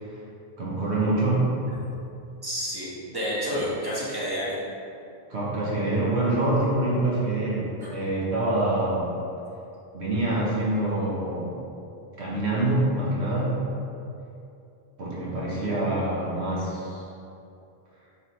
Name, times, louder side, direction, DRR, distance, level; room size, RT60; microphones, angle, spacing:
voice 1, 0.6-1.5 5.3-9.1 9.9-11.5 12.2-13.6 15.0-17.1, right 2 dB, 80° right, -6 dB, 1.5 m, -25 dB
voice 2, 2.4-4.6 7.8-7.9 15.2-15.6, equal, 20° right, -8 dB, 1.5 m, -30 dB
9.5 x 3.8 x 3.2 m, 2.7 s
omnidirectional pair, 1.1 m